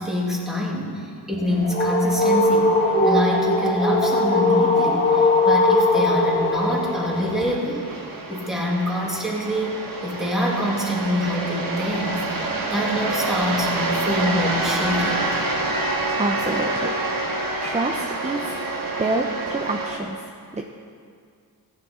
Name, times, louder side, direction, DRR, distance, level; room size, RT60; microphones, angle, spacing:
voice 1, 0.0-7.9 8.3-15.5, equal, ahead, -4 dB, 2.4 m, -26 dB
sound 1, 1.3-7.5, left 2 dB, 25° left, 1.7 m, -20 dB
sound 2, 1.7-20.0, right 2 dB, 60° right, 1.5 m, -29 dB
sound 3, 13.9-19.0, equal, 55° left, 3.1 m, -33 dB
voice 2, 16.2-17.0 17.6-18.6 19.0-20.7, right 2 dB, 20° right, 2 dB, 0.7 m, -27 dB
15.0 x 9.1 x 4.4 m, 2.2 s
cardioid pair, 80°, 39 cm